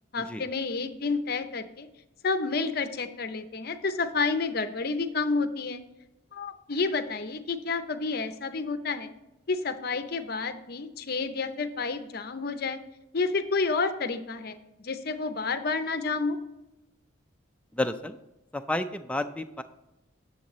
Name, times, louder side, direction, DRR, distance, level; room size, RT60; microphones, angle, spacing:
voice 1, 0.1-1.9 2.2-5.8 6.3-9.1 9.5-12.8 13.1-16.4, left 4 dB, 50° left, 10 dB, 0.6 m, -30 dB
voice 2, 17.7-18.2 18.5-19.6, left 1 dB, 5° left, 8 dB, 0.4 m, -31 dB
9.9 x 7.3 x 3.1 m, 0.94 s
head